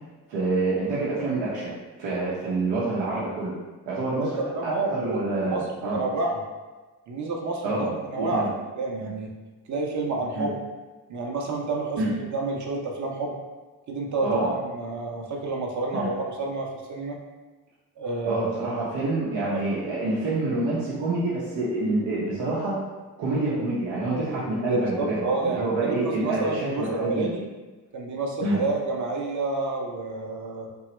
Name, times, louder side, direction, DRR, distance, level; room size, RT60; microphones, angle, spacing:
voice 1, 0.3-1.7 2.0-3.5 3.9-6.0 7.6-7.9 8.2-8.5 9.0-9.1 10.3-10.5 12.0-12.1 14.2-14.5 15.9-16.1 18.2-22.8 23.2-27.3 28.4-28.6, right 2 dB, 80° right, -7 dB, 0.8 m, -27 dB
voice 2, 4.0-5.6 5.9-6.4 7.1-8.5 8.7-9.3 9.7-10.6 11.1-13.4 13.9-17.2 18.0-18.5 24.7-27.4 27.9-30.7, right 3 dB, 45° right, 0 dB, 0.7 m, -29 dB
2.8 x 2.3 x 3.0 m, 1.2 s
supercardioid pair, 45°, 43 cm